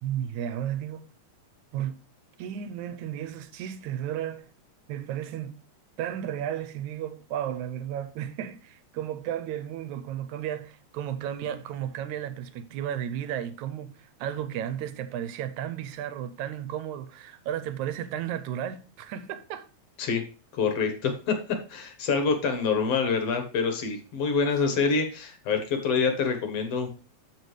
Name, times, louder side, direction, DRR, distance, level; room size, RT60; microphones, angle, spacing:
voice 1, 0.0-1.1 1.7-2.0 2.4-4.5 4.9-5.6 6.0-19.7 24.7-24.9, right 10 dB, 85° right, 2.1 m, -33 dB
voice 2, 20.5-26.9, left 5 dB, 65° left, 2.1 m, -26 dB
13.5 x 4.7 x 3.2 m
omnidirectional pair, 3.3 m